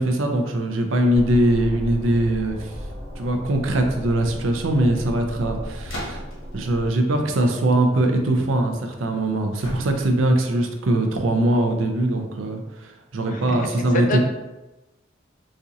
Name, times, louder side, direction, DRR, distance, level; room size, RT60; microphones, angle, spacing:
voice 1, 0.0-2.7 3.2-6.2 6.5-14.2, right 1 dB, 75° right, 4 dB, 0.5 m, -21 dB
sound 1, 1.1-6.9, equal, 35° right, 0.8 m, -35 dB
sound 2, 5.8-6.5 9.6-10.3, equal, 90° left, 1.1 m, -35 dB
voice 2, 13.3-14.2, left 3 dB, 45° left, 4 dB, 0.4 m, -28 dB
4.2 x 2.5 x 2.7 m, 1.0 s
head